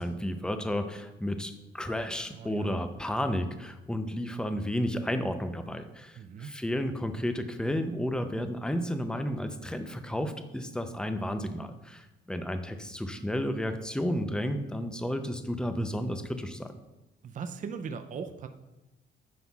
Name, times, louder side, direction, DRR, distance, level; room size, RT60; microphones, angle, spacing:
voice 1, 0.0-16.7, equal, 5° left, 8 dB, 0.6 m, -32 dB
voice 2, 2.3-2.8 6.2-6.5 17.2-18.5, right 6 dB, 40° right, 7 dB, 0.5 m, -39 dB
9.3 x 5.7 x 2.4 m, 1.0 s
cardioid pair, 90°, 20 cm